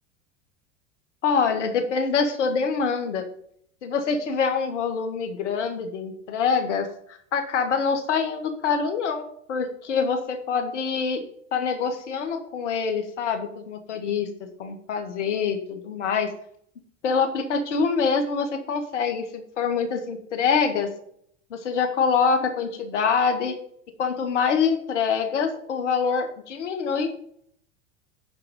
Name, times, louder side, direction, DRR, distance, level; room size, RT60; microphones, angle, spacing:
voice 1, 1.2-3.3 3.8-6.9 7.3-11.2 11.5-16.3 17.0-20.9 21.5-23.6 24.0-27.2, left 5 dB, 70° left, 7 dB, 2.1 m, -25 dB
11.5 x 4.7 x 7.8 m, 0.66 s
figure-of-eight pair, 80°, 37 cm